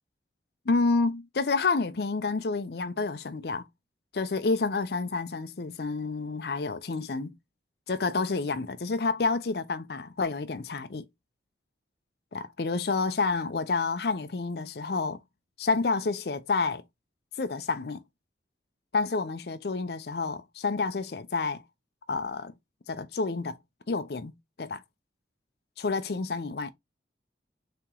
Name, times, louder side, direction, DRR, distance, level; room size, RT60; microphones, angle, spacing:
voice 1, 0.7-3.6 4.1-7.3 7.9-11.0 12.3-15.2 15.6-16.8 17.4-18.0 18.9-21.6 22.1-22.5 22.9-23.6 23.9-24.3 24.6-24.8 25.8-26.7, left 4 dB, 60° left, 0.5 m, -29 dB
4.3 x 2.9 x 3.7 m
head